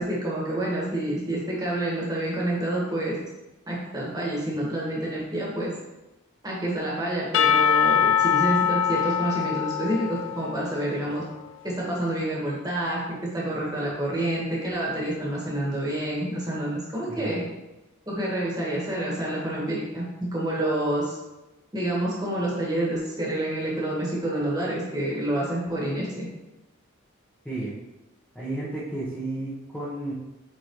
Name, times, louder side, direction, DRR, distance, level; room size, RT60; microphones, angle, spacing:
voice 1, 0.0-3.2 3.7-5.7 6.4-11.2 11.6-17.4 18.1-20.0 20.3-21.2 21.7-26.3, right 1 dB, 15° right, -5 dB, 1.7 m, -28 dB
Percussion / Church bell, 7.3-11.2, left 8 dB, 60° left, 0.3 m, -23 dB
voice 2, 17.1-17.5 27.4-27.7 28.3-30.1, right 2 dB, 5° left, -11 dB, 1.2 m, -32 dB
8.3 x 4.1 x 3.2 m, 1.0 s
head